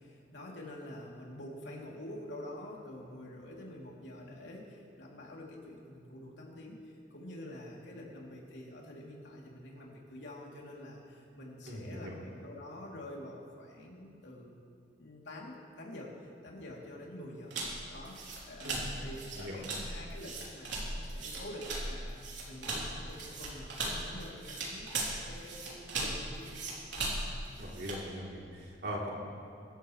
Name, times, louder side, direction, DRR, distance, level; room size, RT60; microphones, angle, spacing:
voice 1, 0.0-14.6 15.0-17.5 17.9-22.2 22.5-26.6, left 1 dB, 85° left, -3 dB, 3.2 m, -47 dB
voice 2, 11.7-12.1 18.6-18.8 19.4-19.6 27.6-29.1, equal, 65° right, -4 dB, 3.5 m, -40 dB
sound 1, 17.5-28.1, right 2 dB, 85° right, 3.6 m, -38 dB
23.5 x 13.5 x 3.3 m, 2.7 s
head